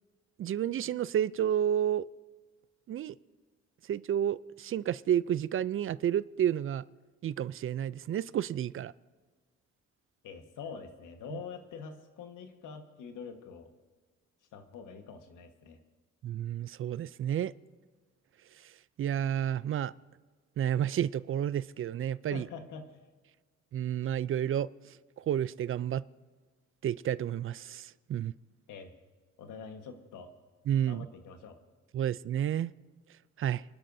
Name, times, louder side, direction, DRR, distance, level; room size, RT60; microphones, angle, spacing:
voice 1, 0.4-2.1 2.9-3.1 3.9-6.8 7.2-8.9 16.2-17.5 18.6-18.7 19.0-19.9 20.6-22.5 23.7-26.0 26.8-28.3 30.7-31.1 31.9-32.7 33.4-33.6, right 10 dB, 45° right, 0.4 m, -31 dB
voice 2, 10.2-13.7 14.5-15.8 22.3-22.9 28.7-28.9 29.4-30.3 30.9-31.6, left 6 dB, 85° left, 1.5 m, -45 dB
28.0 x 12.0 x 2.7 m
cardioid pair, 90°, 30 cm